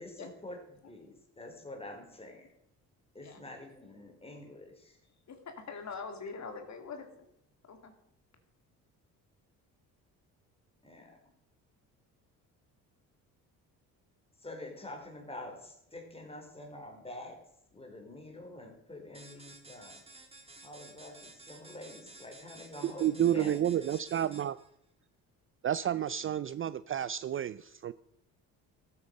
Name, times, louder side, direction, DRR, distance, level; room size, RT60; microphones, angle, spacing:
voice 1, 0.0-2.5 3.1-5.0 10.8-11.2 14.4-17.4 17.7-20.0 20.6-24.1, left 1 dB, 15° left, 3 dB, 4.0 m, -47 dB
voice 2, 3.2-3.6 5.3-7.3 7.6-7.9, left 5 dB, 50° left, 6 dB, 2.5 m, -43 dB
sound 1, 19.1-24.7, right 2 dB, 15° right, 2.8 m, -53 dB
voice 3, 23.0-24.6 25.6-27.9, right 10 dB, 35° right, 16 dB, 0.4 m, -30 dB
14.0 x 8.4 x 6.6 m, 0.78 s
supercardioid pair, 80°, 36 cm